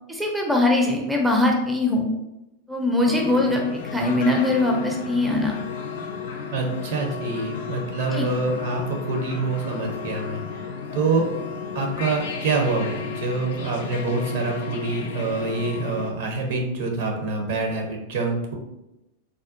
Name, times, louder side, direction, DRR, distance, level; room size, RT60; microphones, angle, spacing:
voice 1, 0.1-2.1 2.7-3.6 3.9-5.5 8.1-8.3, left 2 dB, 5° right, 1 dB, 0.4 m, -21 dB
sound 1, 3.0-16.1, left 5 dB, 55° left, 0.4 m, -33 dB
voice 2, 6.5-10.7 10.9-11.3 11.7-18.5, right 3 dB, 55° right, 2 dB, 0.6 m, -26 dB
3.5 x 2.2 x 2.4 m, 0.91 s
figure-of-eight pair, 90°, 0 cm